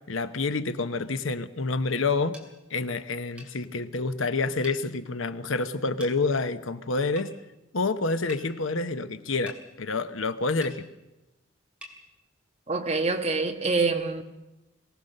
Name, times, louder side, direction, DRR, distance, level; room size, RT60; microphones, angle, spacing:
voice 1, 0.1-2.4 2.7-7.3 7.7-10.8, left 3 dB, 85° left, 1.0 m, -28 dB
sound 1, 2.3-2.5 3.4-3.5 4.6-4.8 6.0-6.2 7.2-7.3 8.3-8.5 9.5-9.6 10.6-10.8 11.8-12.0, equal, 5° right, 2.7 m, -44 dB
voice 2, 12.7-14.2, right 3 dB, 30° right, 1.4 m, -26 dB
22.5 x 17.5 x 6.6 m
head